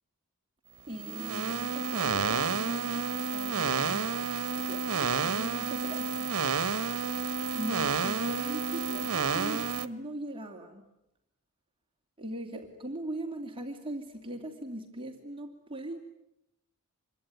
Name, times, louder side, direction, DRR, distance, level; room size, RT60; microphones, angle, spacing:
voice 1, 0.9-6.3 7.5-10.8 12.2-16.0, right 1 dB, 25° right, 2 dB, 2.5 m, -40 dB
sound 1, 0.9-9.9, right 5 dB, 80° right, 1.2 m, -30 dB
27.0 x 23.0 x 9.2 m, 0.85 s
head